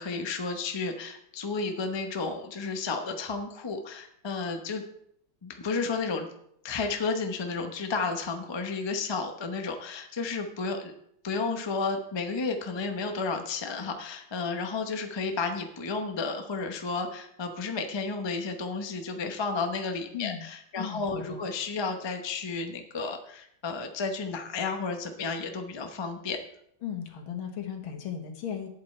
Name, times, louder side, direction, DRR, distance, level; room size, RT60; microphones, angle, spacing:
voice 1, 0.0-4.8 5.4-6.3 6.6-10.9 11.2-26.4, left 4 dB, 30° left, 5 dB, 0.5 m, -32 dB
voice 2, 20.1-20.5 20.8-21.4 26.8-28.7, left 8 dB, 85° left, 5 dB, 2.2 m, -36 dB
11.0 x 8.7 x 4.4 m, 0.73 s
omnidirectional pair, 2.2 m